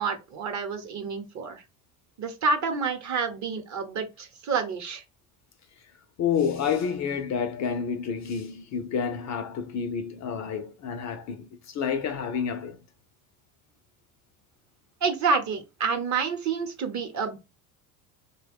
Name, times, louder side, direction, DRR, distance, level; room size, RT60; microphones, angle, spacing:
voice 1, 0.0-1.6 2.2-5.0 15.0-17.4, right 5 dB, 40° right, 0.9 m, -28 dB
voice 2, 6.2-12.8, left 6 dB, 40° left, 0.6 m, -29 dB
3.0 x 2.2 x 3.4 m
supercardioid pair, 85°, 44 cm